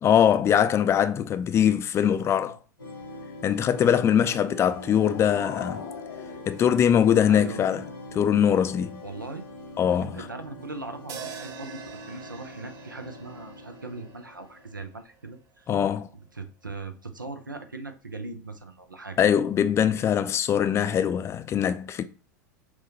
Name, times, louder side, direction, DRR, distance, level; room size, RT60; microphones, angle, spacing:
voice 1, 0.0-2.6 3.4-5.8 6.5-7.8 8.1-9.0 9.8-10.2 15.7-16.1 19.2-22.0, left 9 dB, 25° left, 0.4 m, -22 dB
voice 2, 1.9-2.6 3.8-4.6 7.3-7.6 9.0-9.5 10.0-11.8 12.1-15.7 16.3-19.2, right 3 dB, 90° right, 0.6 m, -40 dB
sound 1, 2.8-14.7, left 2 dB, 85° left, 1.3 m, -43 dB
sound 2, 4.6-7.5, left 7 dB, 65° left, 0.6 m, -42 dB
sound 3, 11.1-15.4, right 7 dB, 35° right, 0.6 m, -44 dB
6.0 x 2.2 x 2.7 m
figure-of-eight pair, 85°, 10 cm